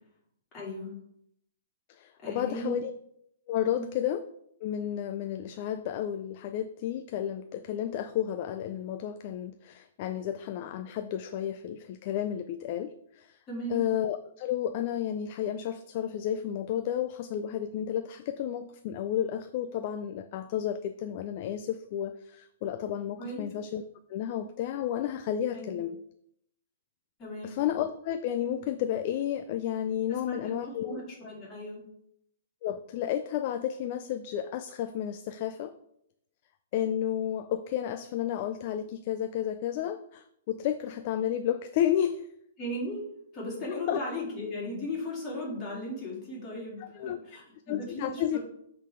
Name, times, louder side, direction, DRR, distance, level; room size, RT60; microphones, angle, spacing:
voice 1, 0.5-0.9 2.2-2.8 3.7-3.9 13.5-13.9 23.2-23.5 25.5-25.7 27.2-27.6 30.1-31.8 42.6-43.0 43.3-48.4, left 1 dB, 20° left, -4 dB, 2.7 m, -37 dB
voice 2, 1.9-2.9 3.5-4.2 4.6-13.4 13.7-23.8 24.1-26.0 27.4-31.0 32.6-35.7 36.7-42.3 43.7-44.0 46.8-47.2 47.7-48.4, left 10 dB, 40° left, 10 dB, 0.3 m, -32 dB
7.6 x 3.9 x 4.8 m, 0.74 s
hypercardioid pair, 160°, 0 cm